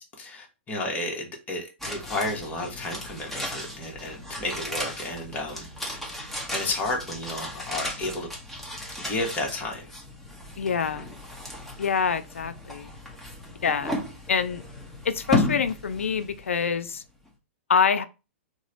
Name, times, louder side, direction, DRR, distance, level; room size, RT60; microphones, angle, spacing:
voice 1, 0.2-6.0 6.5-8.3 9.0-9.9, left 2 dB, 20° left, 1.2 m, -32 dB
sound 1, 1.8-17.0 17.3-17.4, left 1 dB, ahead, 1.0 m, -34 dB
voice 2, 10.6-11.1 11.8-12.9 13.6-14.0 14.3-14.6 15.0-17.0 17.7-18.1, left 6 dB, 85° left, 0.3 m, -25 dB
2.9 x 2.1 x 3.9 m
hypercardioid pair, 120°, 7 cm